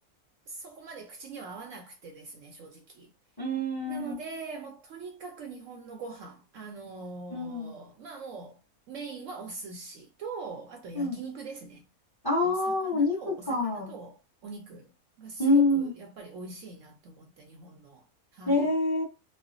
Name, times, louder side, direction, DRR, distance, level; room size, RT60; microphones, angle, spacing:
voice 1, 0.5-3.1 3.9-8.6 8.9-11.8 12.4-12.6 12.8-14.9 15.2-18.1 18.3-18.7, right 4 dB, 70° right, 0.8 m, -42 dB
voice 2, 3.4-4.1 7.3-7.7 10.9-11.2 12.2-13.9 15.4-15.9 18.5-19.0, left 2 dB, 20° left, 0.8 m, -26 dB
3.1 x 2.1 x 2.4 m
omnidirectional pair, 1.6 m